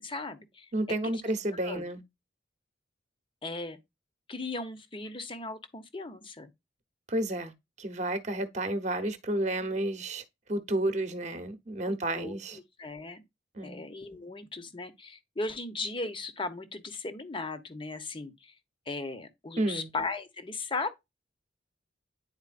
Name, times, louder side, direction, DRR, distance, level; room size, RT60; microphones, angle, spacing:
voice 1, 0.0-0.7 1.0-1.2 1.5-1.9 3.4-3.8 4.3-6.5 11.9-13.2 13.6-18.5 18.9-20.9, left 3 dB, 25° left, 0.8 m, -37 dB
voice 2, 0.7-2.0 7.1-7.5 7.8-12.6 13.5-13.8 19.6-19.9, right 1 dB, 40° right, 0.9 m, -31 dB
9.6 x 4.3 x 2.5 m
head